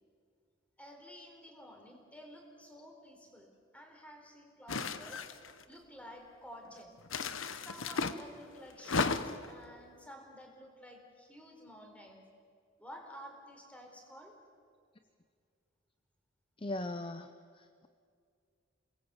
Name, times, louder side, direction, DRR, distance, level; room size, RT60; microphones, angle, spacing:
voice 1, 0.8-5.2 5.7-7.0 7.5-9.2 9.5-12.2 12.8-14.4, equal, 5° left, 2 dB, 4.3 m, -52 dB
sound 1, 4.7-5.6 7.1-8.2 8.8-9.5, left 4 dB, 80° left, 1.2 m, -34 dB
voice 2, 16.6-17.3 17.6-17.9, left 2 dB, 25° left, 9 dB, 0.8 m, -39 dB
28.5 x 20.0 x 8.3 m, 2.2 s
head